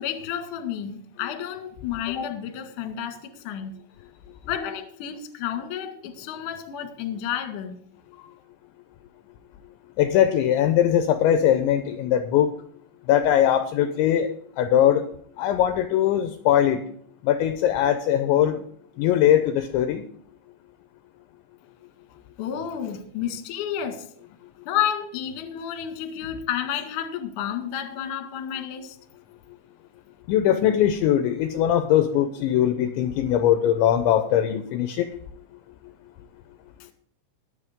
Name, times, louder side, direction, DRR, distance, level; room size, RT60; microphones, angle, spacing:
voice 1, 0.0-3.7 4.4-7.8 8.2-8.3 22.4-24.1 24.7-29.0, left 9 dB, 60° left, 6 dB, 2.3 m, -31 dB
voice 2, 10.0-12.5 13.1-14.3 14.6-15.0 15.4-16.8 17.2-18.6 19.0-20.0 30.3-35.1, left 10 dB, 80° left, 9 dB, 2.8 m, -21 dB
21.0 x 7.8 x 3.6 m, 0.63 s
omnidirectional pair, 5.8 m